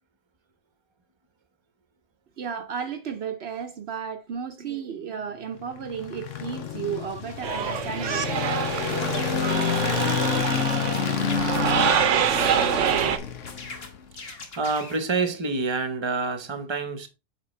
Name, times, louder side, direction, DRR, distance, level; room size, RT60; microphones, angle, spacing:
voice 1, 2.4-8.2, right 7 dB, 65° right, 0.9 m, -33 dB
sound 1, 5.6-14.0, left 7 dB, 85° left, 1.3 m, -29 dB
sound 2, 7.4-13.2, right 8 dB, 85° right, 1.1 m, -25 dB
sound 3, 8.9-12.0 12.5-13.1 13.4-15.0, left 3 dB, 55° left, 1.5 m, -40 dB
voice 2, 14.2-17.1, right 4 dB, 25° right, 0.8 m, -28 dB
7.5 x 5.0 x 3.1 m
omnidirectional pair, 1.2 m